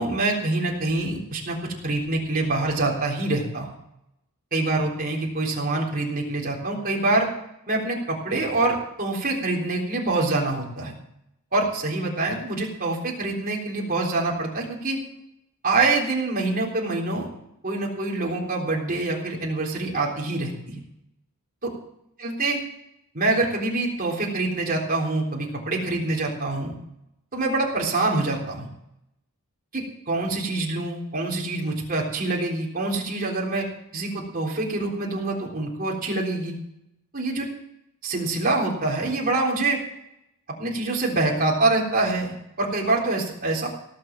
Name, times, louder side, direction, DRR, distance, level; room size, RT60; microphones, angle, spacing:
voice 1, 0.0-3.7 4.5-7.3 7.7-10.9 11.5-15.0 15.6-17.3 17.6-20.8 22.2-22.6 23.1-26.8 27.3-28.7 29.7-33.7 33.9-36.6 37.1-37.4 38.0-39.8 40.6-43.7, right 2 dB, 40° right, -2 dB, 3.8 m, -25 dB
17.5 x 7.5 x 7.6 m, 0.80 s
head